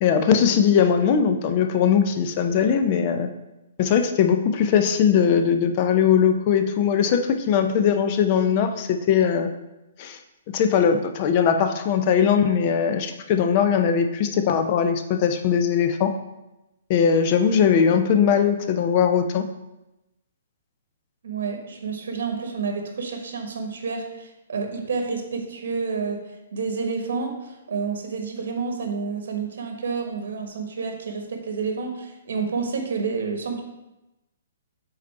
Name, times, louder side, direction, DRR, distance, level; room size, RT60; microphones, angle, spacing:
voice 1, 0.0-3.3 3.8-9.5 10.0-10.2 10.5-16.2 16.9-19.5, left 7 dB, 30° left, 7 dB, 0.4 m, -20 dB
voice 2, 21.2-26.2 26.5-33.6, right 5 dB, 70° right, 3 dB, 1.2 m, -29 dB
5.1 x 4.1 x 4.5 m, 0.98 s
hypercardioid pair, 170°, 0 cm